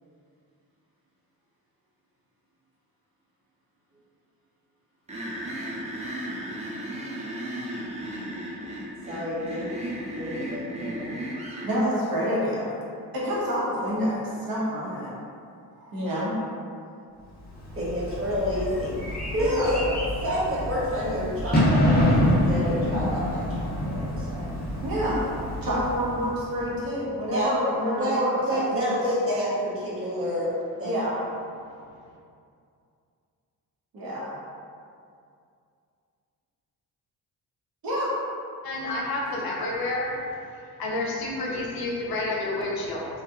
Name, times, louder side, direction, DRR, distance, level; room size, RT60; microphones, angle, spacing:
sound 1, 5.1-11.7, right 1 dB, 20° right, 0.5 m, -34 dB
voice 1, 9.1-9.7 10.1-11.2 17.7-18.9 19.4-19.8 20.2-24.4 27.3-27.5 28.0-28.2 28.5-30.5 30.8-30.9, equal, 35° right, -8 dB, 1.0 m, -29 dB
voice 2, 11.6-12.7 13.1-15.1 15.8-16.3 19.3-19.7 24.8-28.6 30.8-31.2 33.9-34.3 37.8-38.1, equal, 65° right, -6 dB, 0.9 m, -27 dB
Bird / Fireworks, 17.5-26.7, left 1 dB, 25° left, 0.7 m, -27 dB
voice 3, 38.6-40.1 40.8-43.2, left 2 dB, 65° left, -3 dB, 0.6 m, -29 dB
2.8 x 2.2 x 2.3 m, 2.4 s
cardioid pair, 80°, 38 cm